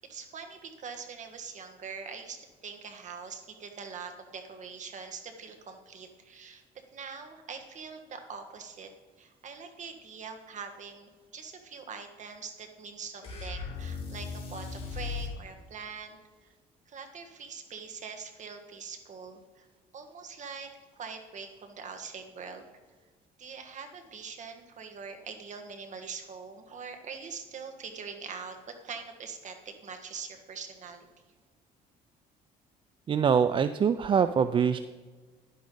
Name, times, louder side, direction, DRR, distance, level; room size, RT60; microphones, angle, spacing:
voice 1, 0.1-16.5 16.9-19.7 19.9-20.7 20.9-22.6 23.4-31.1, right 5 dB, 45° right, 5 dB, 1.5 m, -43 dB
sound 1, 13.2-15.4, left 5 dB, 35° left, 2.9 m, -37 dB
voice 2, 33.1-34.8, right 7 dB, 30° right, 12 dB, 0.4 m, -24 dB
11.0 x 10.5 x 3.9 m, 1.4 s
cardioid pair, 110°, 17 cm